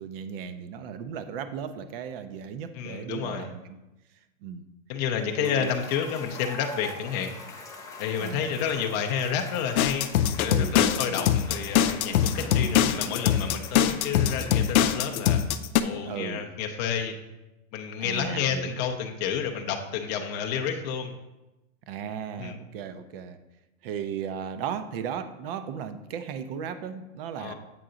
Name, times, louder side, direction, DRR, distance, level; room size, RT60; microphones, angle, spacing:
voice 1, 0.0-3.8 4.4-4.7 5.4-5.7 8.2-8.6 10.5-11.3 12.3-13.0 13.8-14.0 16.0-16.5 18.0-18.7 21.9-23.4 23.8-27.5, right 7 dB, 45° right, 11 dB, 0.6 m, -36 dB
voice 2, 2.7-3.5 4.9-7.4 8.0-10.1 10.4-15.4 15.8-17.2 17.7-21.1 22.4-22.6 27.4-27.5, left 7 dB, 30° left, 3 dB, 0.5 m, -30 dB
Cheering / Applause / Crowd, 5.2-15.7, left 3 dB, 10° left, 0.8 m, -44 dB
sound 1, 9.8-15.8, left 10 dB, 90° left, 0.5 m, -23 dB
7.7 x 4.6 x 3.8 m, 1.0 s
hypercardioid pair, 140°, 41 cm